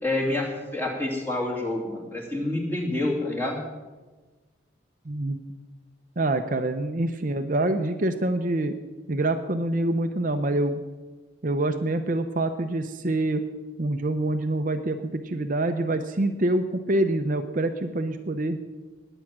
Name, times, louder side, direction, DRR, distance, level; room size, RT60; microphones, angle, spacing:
voice 1, 0.0-3.6, left 2 dB, 10° left, -2 dB, 2.9 m, -28 dB
voice 2, 5.1-5.4 6.2-8.7 9.1-10.8 11.4-13.4 13.8-18.6, right 2 dB, 45° right, 7 dB, 0.7 m, -26 dB
20.0 x 9.0 x 6.1 m, 1.3 s
head